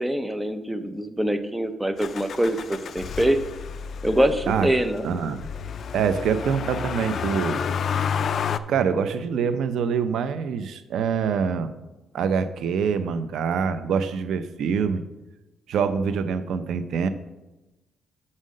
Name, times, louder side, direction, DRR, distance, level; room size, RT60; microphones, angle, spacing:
voice 1, 0.0-3.4 4.0-5.1, right 1 dB, 5° right, 9 dB, 0.6 m, -24 dB
Motor vehicle (road), 2.0-8.6, left 7 dB, 55° left, 0.3 m, -30 dB
voice 2, 5.0-5.4 5.9-7.6 8.7-11.7 12.1-15.0 15.7-17.1, right 6 dB, 75° right, 11 dB, 0.6 m, -25 dB
6.3 x 5.6 x 6.3 m, 1.0 s
cardioid pair, 110°, 0 cm